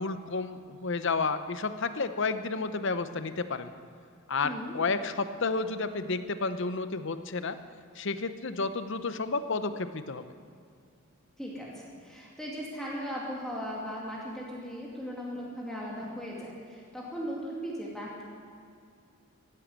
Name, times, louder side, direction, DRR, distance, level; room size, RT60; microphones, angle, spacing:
voice 1, 0.0-3.7 4.3-7.6 7.9-10.2, left 4 dB, 60° left, 11 dB, 0.8 m, -31 dB
voice 2, 4.4-4.8 11.4-18.2, equal, ahead, -5 dB, 2.5 m, -38 dB
15.0 x 11.5 x 8.2 m, 2.4 s
head